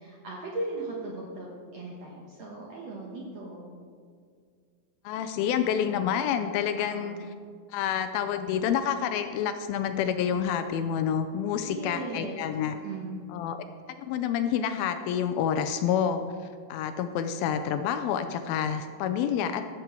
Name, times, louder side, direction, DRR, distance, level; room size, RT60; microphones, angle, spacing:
voice 1, 0.0-3.7 6.9-7.2 11.7-12.4 12.8-13.2, right 2 dB, 65° right, -3 dB, 1.7 m, -37 dB
voice 2, 5.1-7.2 7.7-12.8 13.3-13.6 14.0-16.2 16.7-19.7, left 8 dB, 80° left, 9 dB, 2.2 m, -28 dB
14.0 x 7.4 x 4.4 m, 2.1 s
omnidirectional pair, 4.5 m